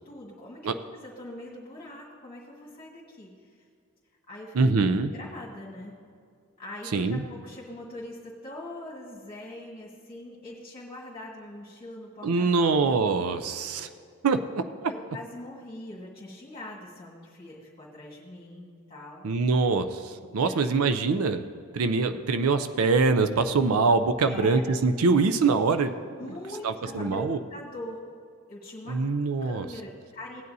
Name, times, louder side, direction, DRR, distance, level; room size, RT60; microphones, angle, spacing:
voice 1, 0.0-3.6 4.3-4.7 5.1-5.9 6.6-12.9 14.9-19.2 20.4-20.9 24.2-24.7 26.2-28.0 28.5-29.1 29.4-30.4, left 1 dB, 25° left, -4 dB, 1.7 m, -42 dB
voice 2, 4.5-5.1 6.9-7.2 12.2-13.9 14.2-14.9 19.2-21.4 21.7-25.9 26.6-27.4 28.9-29.7, right 4 dB, 85° right, 9 dB, 0.5 m, -24 dB
17.0 x 9.3 x 2.7 m, 2.3 s
head